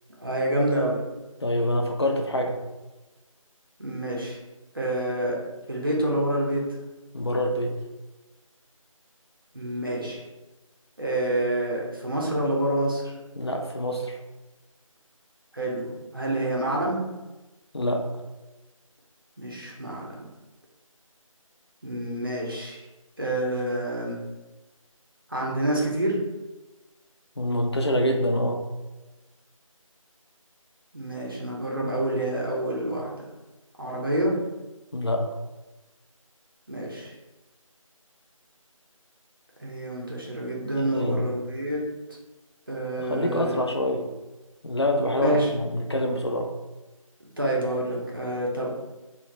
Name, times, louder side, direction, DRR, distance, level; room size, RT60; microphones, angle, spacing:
voice 1, 0.2-1.0 3.8-4.4 4.7-5.4 5.7-6.6 9.5-10.2 11.0-13.1 15.5-17.1 19.4-20.1 21.8-22.8 23.2-24.2 25.3-26.2 30.9-33.1 33.8-34.4 36.7-37.1 39.6-41.8 42.7-43.7 45.2-45.5 47.4-48.7, right 1 dB, 40° right, -3 dB, 0.5 m, -27 dB
voice 2, 1.4-2.6 7.1-7.8 13.4-14.2 17.7-18.1 27.4-28.6 34.9-35.3 40.8-41.3 43.0-44.1 44.6-46.5, left 1 dB, 50° left, 3 dB, 0.4 m, -26 dB
2.6 x 2.0 x 3.1 m, 1.1 s
figure-of-eight pair, 175°, 18 cm